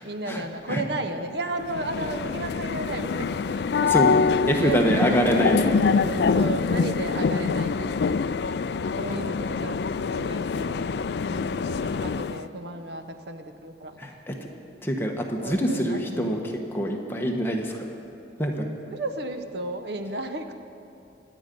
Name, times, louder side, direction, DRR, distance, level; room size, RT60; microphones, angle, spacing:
voice 1, 0.0-4.0 4.4-5.5 5.8-8.3 8.9-10.9 11.3-14.1 15.4-16.5 18.9-20.5, right 2 dB, 60° right, 8 dB, 0.8 m, -34 dB
sound 1, 1.6-12.5, left 5 dB, 60° left, 0.3 m, -25 dB
voice 2, 4.5-6.0 14.0-14.3 14.8-16.4 16.7-17.9 18.4-18.7, equal, 10° left, 1 dB, 1.1 m, -25 dB
24.0 x 9.0 x 5.3 m, 2.8 s
head